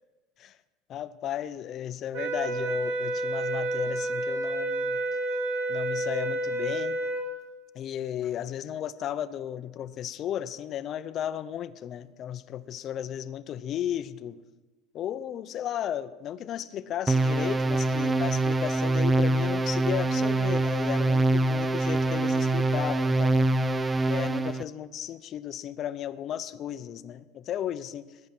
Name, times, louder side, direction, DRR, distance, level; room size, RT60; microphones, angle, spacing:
voice 1, 0.9-5.0 5.7-7.0 7.7-14.4 14.9-23.5 24.1-28.3, left 10 dB, 40° left, 14 dB, 0.6 m, -34 dB
sound 1, 2.1-7.3, right 2 dB, 70° right, 4.2 m, -30 dB
sound 2, 17.1-24.6, right 2 dB, 15° right, 0.4 m, -24 dB
18.5 x 9.5 x 6.0 m, 1.3 s
supercardioid pair, 145°, 0 cm